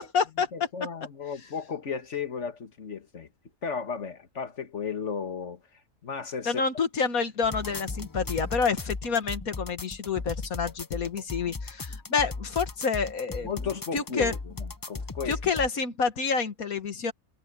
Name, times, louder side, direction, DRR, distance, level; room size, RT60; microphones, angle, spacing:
voice 1, 0.0-0.5 6.5-13.5 13.9-14.3 15.3-17.1, left 5 dB, 75° left, 2.1 m, -28 dB
voice 2, 0.5-3.3 3.6-5.6 6.0-6.6 11.9-12.0 13.4-15.4, left 6 dB, 55° left, 1.9 m, -34 dB
sound 1, 7.4-15.7, left 3 dB, 25° left, 0.4 m, -37 dB
omnidirectional pair, 1.5 m